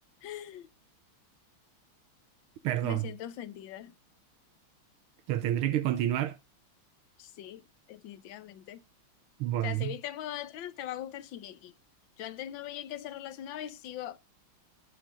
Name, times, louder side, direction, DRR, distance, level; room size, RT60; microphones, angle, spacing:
voice 1, 0.2-0.7 2.8-3.9 7.2-7.6 7.9-8.8 9.6-11.7 12.2-14.2, left 11 dB, 70° left, 1.5 m, -40 dB
voice 2, 2.6-3.1 5.3-6.3 9.4-9.9, right 12 dB, 85° right, 1.6 m, -29 dB
20.0 x 6.9 x 2.5 m
omnidirectional pair, 2.3 m